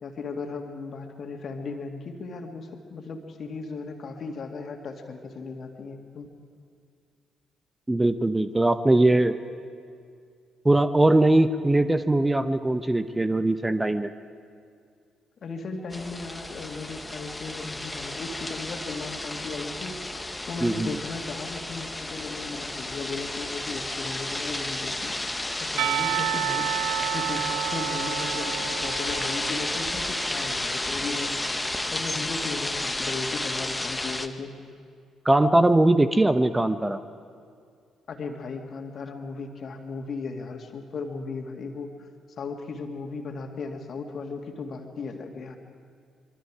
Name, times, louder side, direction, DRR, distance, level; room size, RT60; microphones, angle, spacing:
voice 1, 0.0-6.3 15.4-20.0 20.5-25.1 25.6-31.4 31.9-34.5 38.1-42.1 42.4-45.6, left 4 dB, 50° left, 4 dB, 2.4 m, -36 dB
voice 2, 7.9-9.4 10.6-14.1 20.6-20.9 35.2-37.0, right 2 dB, 15° right, 11 dB, 0.9 m, -21 dB
sound 1, 15.9-34.3, left 1 dB, 15° left, 1.4 m, -32 dB
Percussion, 25.8-30.6, right 13 dB, 65° right, 0.4 m, -31 dB
24.5 x 23.5 x 4.9 m, 2.3 s
figure-of-eight pair, 45°, 0 cm